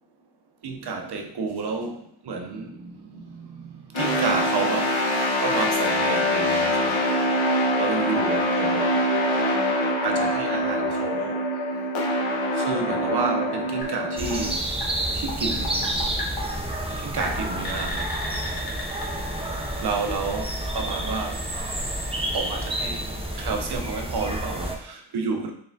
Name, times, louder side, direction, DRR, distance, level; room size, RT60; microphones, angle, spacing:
voice 1, 0.6-5.0 5.4-7.0 7.8-9.0 10.0-11.4 12.5-14.6 15.1-15.9 17.0-18.2 19.8-21.4 22.3-23.1 23.4-25.5, right 4 dB, 55° right, 3 dB, 0.7 m, -30 dB
sound 1, 3.9-14.5, left 1 dB, 70° left, 1.1 m, -24 dB
sound 2, 13.8-23.6, left 1 dB, 45° left, 1.1 m, -38 dB
sound 3, 14.2-24.8, right 1 dB, 15° right, 0.4 m, -29 dB
4.0 x 3.6 x 2.6 m, 0.66 s
wide cardioid pair, 145°, 48 cm